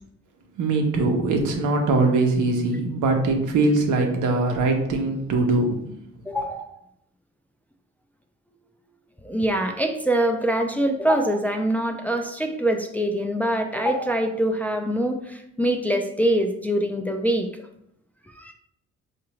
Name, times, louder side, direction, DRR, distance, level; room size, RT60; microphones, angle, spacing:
voice 1, 0.6-5.8, right 3 dB, 80° right, 2 dB, 0.8 m, -22 dB
voice 2, 6.3-6.8 9.2-17.5 18.3-18.5, right 1 dB, 5° left, 3 dB, 0.4 m, -24 dB
4.6 x 2.5 x 3.0 m, 0.75 s
cardioid pair, 90°, 30 cm